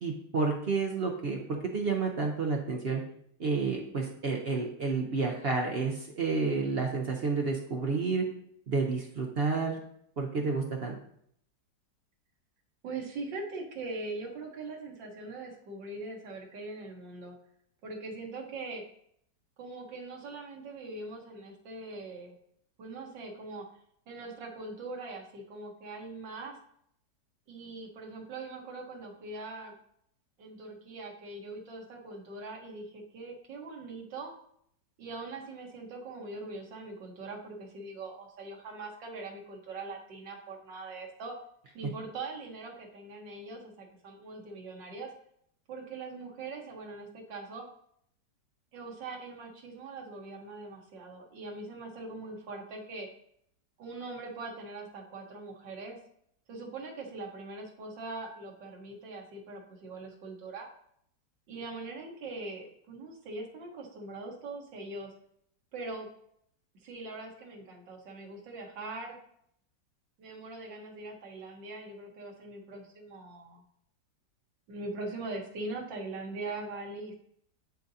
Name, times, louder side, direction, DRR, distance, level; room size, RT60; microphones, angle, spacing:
voice 1, 0.0-3.0 3.4-8.2 8.7-9.8 10.2-11.0, right 4 dB, 55° right, 1 dB, 0.6 m, -30 dB
voice 2, 12.8-17.3 17.8-18.8 19.6-22.4 22.8-23.7 24.1-26.6 27.5-29.8 30.4-34.3 35.0-41.4 41.7-45.1 45.7-47.7 48.7-53.1 53.8-56.0 56.5-60.7 61.5-65.1 65.7-66.1 66.8-69.2 70.2-73.6 74.7-77.1, right 3 dB, 90° right, 0 dB, 1.9 m, -41 dB
10.5 x 3.8 x 2.7 m, 0.69 s
omnidirectional pair, 1.9 m